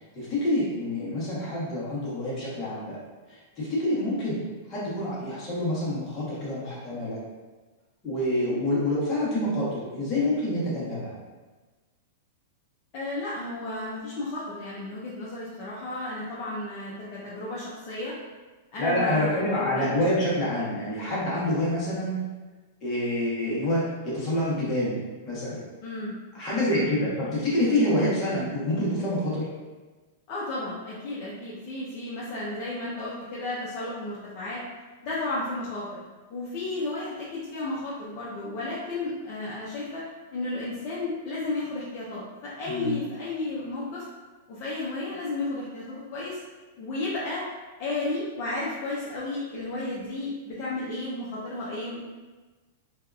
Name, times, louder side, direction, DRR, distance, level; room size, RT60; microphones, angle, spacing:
voice 1, 0.1-3.0 3.3-4.4 4.7-7.2 8.0-11.1 18.8-22.2 22.8-25.0 25.2-25.6 26.3-29.5 42.7-43.0, left 1 dB, 25° left, -8 dB, 1.0 m, -27 dB
voice 2, 12.9-18.1 18.7-20.0 25.8-26.1 26.5-27.1 30.3-34.6 35.0-35.9 36.3-40.0 40.3-44.1 44.5-46.4 46.8-47.5 47.8-52.0, left 2 dB, 45° left, -7 dB, 0.5 m, -33 dB
2.7 x 2.3 x 2.3 m, 1.3 s
supercardioid pair, 150°, 0 cm